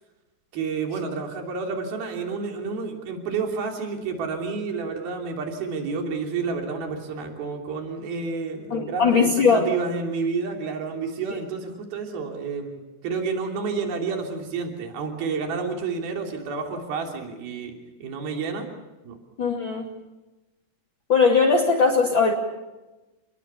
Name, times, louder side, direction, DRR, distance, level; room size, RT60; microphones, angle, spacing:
voice 1, 0.5-17.7 18.0-18.7 19.0-19.2, right 4 dB, 75° right, 2 dB, 5.1 m, -30 dB
voice 2, 8.7-9.8 19.4-19.9 21.1-22.3, left 4 dB, 35° left, 0 dB, 2.9 m, -19 dB
30.0 x 21.5 x 6.9 m, 1.1 s
omnidirectional pair, 4.3 m